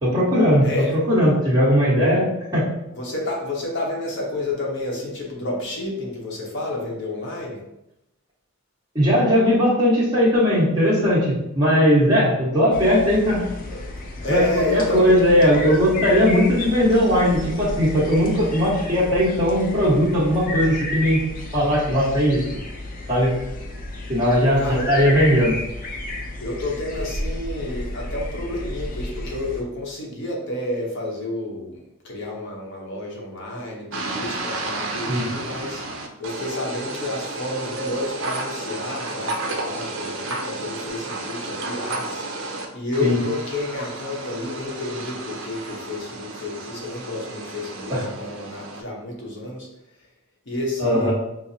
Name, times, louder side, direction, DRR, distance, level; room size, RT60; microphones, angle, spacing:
voice 1, 0.0-0.6 0.9-2.6 8.9-13.5 14.3-21.2 21.5-22.4 23.1-23.3 24.1-25.5 35.1-35.3 43.0-43.2 47.9-48.0 50.8-51.1, equal, 20° right, -8 dB, 1.2 m, -18 dB
voice 2, 0.6-1.0 2.9-7.6 14.2-15.2 24.6-25.1 26.4-35.8 36.2-49.7 50.5-51.1, left 2 dB, 55° left, -2 dB, 0.8 m, -30 dB
sound 1, 12.7-29.6, left 2 dB, 40° left, 0.5 m, -32 dB
sound 2, 33.9-42.7 42.9-48.8, right 2 dB, 65° right, 0.5 m, -32 dB
5.8 x 2.0 x 2.7 m, 0.86 s
head